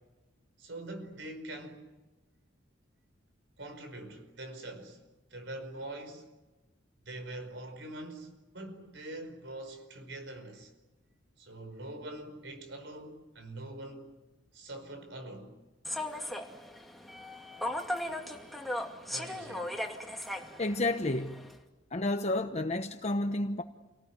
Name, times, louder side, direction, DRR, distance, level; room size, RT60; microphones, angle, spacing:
voice 1, 0.6-1.9 3.6-5.0 5.3-6.3 7.1-10.7 11.4-14.1 14.5-15.5 19.1-19.7, right 1 dB, 70° right, 5.3 m, -44 dB
Human voice / Subway metro underground, 15.8-21.6, left 1 dB, ahead, 2.4 m, -38 dB
voice 2, 20.6-21.4 21.9-23.6, left 2 dB, 35° left, 1.0 m, -30 dB
29.0 x 19.0 x 9.6 m
head